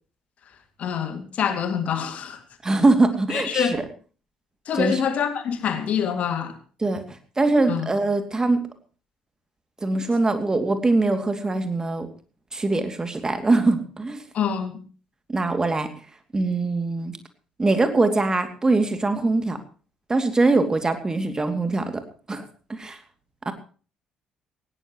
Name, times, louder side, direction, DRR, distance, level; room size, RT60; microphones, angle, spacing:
voice 1, 0.8-2.4 3.3-3.8 4.7-6.6 7.7-7.9 14.3-14.8, left 7 dB, 50° left, 8 dB, 2.5 m, -25 dB
voice 2, 2.6-3.8 4.7-5.0 6.8-7.0 7.4-8.6 9.8-12.1 12.5-14.2 15.3-15.9 16.3-17.1 17.6-19.6 20.1-22.0 22.3-22.4 22.7-23.0 23.5-23.6, right 2 dB, 20° right, 8 dB, 2.7 m, -22 dB
19.0 x 17.5 x 3.1 m, 0.39 s
figure-of-eight pair, 45°, 3 cm